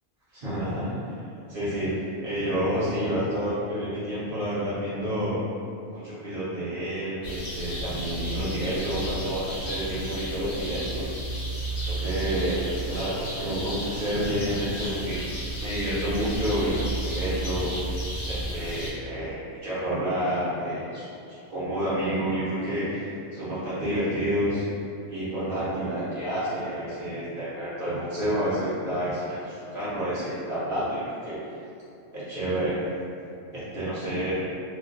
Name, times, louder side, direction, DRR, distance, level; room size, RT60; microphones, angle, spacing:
voice 1, 0.3-1.2 1.5-5.4 5.9-11.1 11.9-17.7 18.2-24.6 25.1-31.4 32.1-32.8 33.5-34.3, equal, 55° right, -11 dB, 0.8 m, -29 dB
sound 1, 7.2-18.9, right 1 dB, 60° left, 0.8 m, -32 dB
2.4 x 2.0 x 2.4 m, 2.5 s
omnidirectional pair, 1.2 m